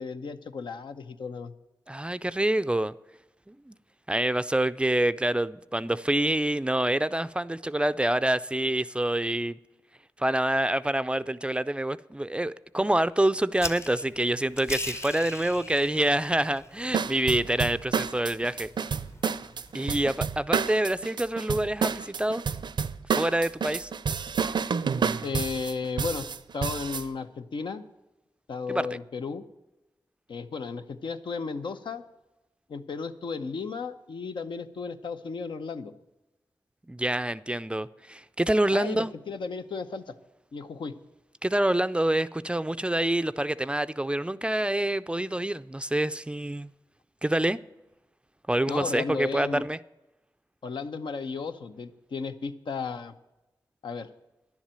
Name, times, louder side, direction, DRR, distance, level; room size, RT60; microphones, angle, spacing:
voice 1, 0.0-1.5 25.2-26.3 26.5-27.8 28.5-29.4 30.3-32.0 32.7-35.9 38.7-40.1 40.5-40.9 48.7-49.6 50.6-53.2 53.8-54.1, left 5 dB, 85° left, 0.8 m, -34 dB
voice 2, 1.9-2.9 3.5-3.7 4.1-9.6 10.2-18.7 19.7-22.4 23.1-23.9 28.7-28.9 36.9-39.1 41.4-46.7 47.2-47.6 48.5-49.8, right 1 dB, 15° right, 0.4 m, -26 dB
sound 1, 13.5-19.7, left 2 dB, 35° left, 0.9 m, -41 dB
sound 2, 16.9-27.1, right 6 dB, 70° right, 0.5 m, -29 dB
11.0 x 7.3 x 8.9 m
cardioid pair, 65°, 8 cm